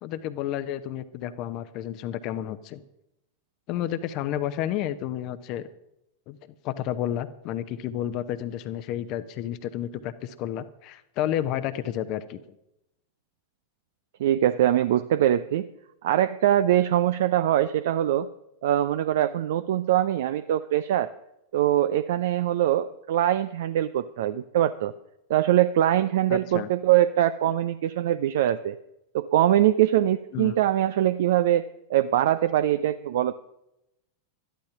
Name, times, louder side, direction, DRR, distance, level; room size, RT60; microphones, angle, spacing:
voice 1, 0.0-2.8 3.7-5.7 6.3-6.4 6.6-12.4 26.3-26.7 30.3-30.6, left 11 dB, 40° left, 11 dB, 0.8 m, -31 dB
voice 2, 14.2-15.6 16.0-18.3 18.6-21.1 21.5-24.9 25.3-28.8 29.1-31.6 31.9-33.3, right 12 dB, 55° right, 14 dB, 0.4 m, -23 dB
13.0 x 11.5 x 5.8 m, 0.86 s
figure-of-eight pair, 90°, 0 cm